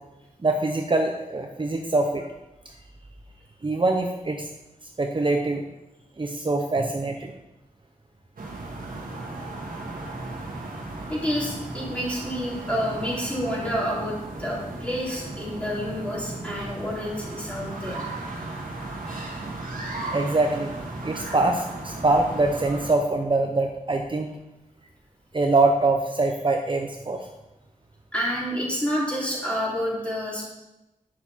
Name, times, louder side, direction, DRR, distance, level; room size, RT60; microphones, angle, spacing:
voice 1, 0.4-2.3 3.6-4.5 5.0-5.6 6.2-7.3 19.9-20.7 21.0-24.3 25.3-27.3, right 2 dB, 35° right, 3 dB, 0.7 m, -24 dB
sound 1, 8.4-22.9, right 2 dB, 85° right, 1.6 m, -36 dB
voice 2, 11.1-18.0 28.1-30.4, equal, 10° left, -6 dB, 3.6 m, -29 dB
9.3 x 6.4 x 4.4 m, 0.98 s
wide cardioid pair, 70°, 14 cm